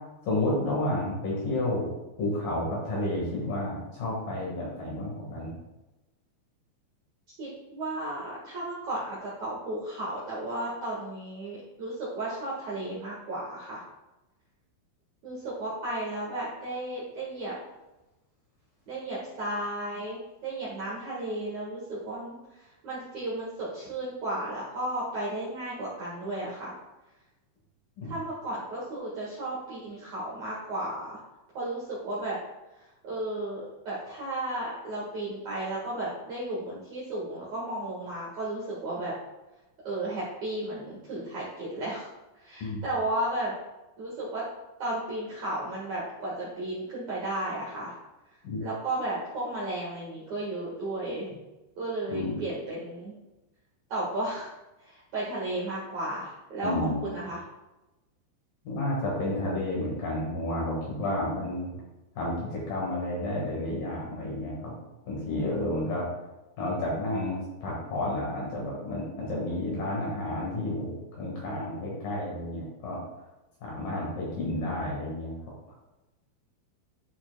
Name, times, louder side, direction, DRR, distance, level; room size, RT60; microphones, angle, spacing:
voice 1, 0.3-1.8 2.2-5.5 28.0-28.1 42.6-42.8 48.4-48.6 52.1-52.4 56.6-57.0 58.7-61.7 62.2-64.7 65.0-66.1 66.6-67.4 67.6-73.0 73.6-75.3, left 1 dB, 60° left, -4 dB, 2.7 m, -31 dB
voice 2, 7.4-13.8 15.2-17.6 18.9-26.7 28.0-31.2 31.5-32.4 32.8-39.1 39.8-42.1 42.3-43.5 44.0-44.4 44.8-47.9 48.6-51.3 51.8-53.1 53.9-54.5 54.8-57.4, right 1 dB, 60° right, -7 dB, 1.9 m, -34 dB
11.5 x 5.7 x 2.2 m, 1.0 s
omnidirectional pair, 5.5 m